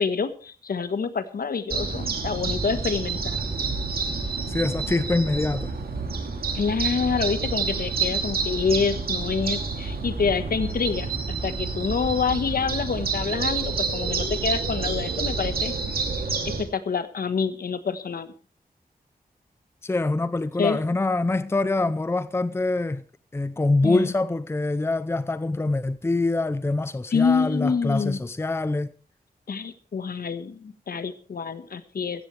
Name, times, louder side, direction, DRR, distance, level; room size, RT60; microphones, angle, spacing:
voice 1, 0.0-3.4 6.5-15.7 16.6-18.3 20.6-20.8 23.8-24.1 27.1-28.2 29.5-32.3, left 5 dB, 75° left, 1.4 m, -27 dB
sound 1, 1.7-16.6, right 4 dB, 75° right, 2.9 m, -28 dB
voice 2, 4.5-5.7 19.8-23.0 23.3-28.9, left 2 dB, 15° left, 0.6 m, -25 dB
15.5 x 14.5 x 3.3 m
wide cardioid pair, 120°, 16 cm